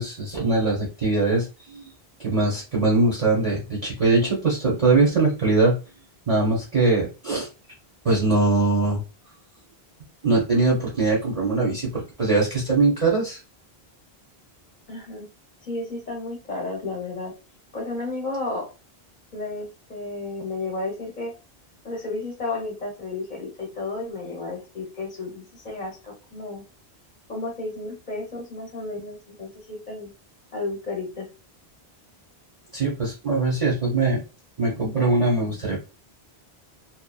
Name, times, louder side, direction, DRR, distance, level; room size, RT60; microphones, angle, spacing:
voice 1, 0.0-1.9 2.2-5.8 6.3-7.5 8.0-9.0 10.2-13.4 32.7-34.2 34.6-35.8, right 3 dB, 40° right, -3 dB, 0.7 m, -22 dB
voice 2, 14.9-15.3 15.6-17.3 17.7-18.7 19.3-21.3 21.8-26.6 27.3-30.1 30.5-31.3, left 2 dB, 45° left, -2 dB, 0.8 m, -32 dB
2.7 x 2.2 x 2.2 m, 0.30 s
omnidirectional pair, 1.1 m